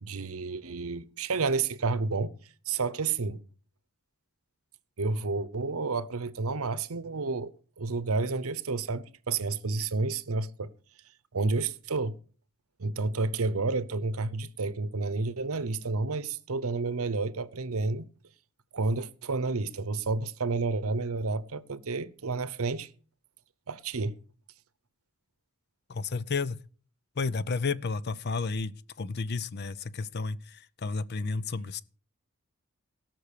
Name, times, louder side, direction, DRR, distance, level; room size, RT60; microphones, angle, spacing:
voice 1, 0.0-2.3 2.7-3.4 5.0-7.5 7.8-10.7 11.3-12.1 12.8-18.1 18.7-22.9 23.7-24.1, right 3 dB, 75° right, 0.8 m, -30 dB
voice 2, 25.9-26.6 27.2-28.7 29.0-31.8, left 4 dB, 45° left, 0.6 m, -32 dB
18.0 x 6.1 x 6.7 m
head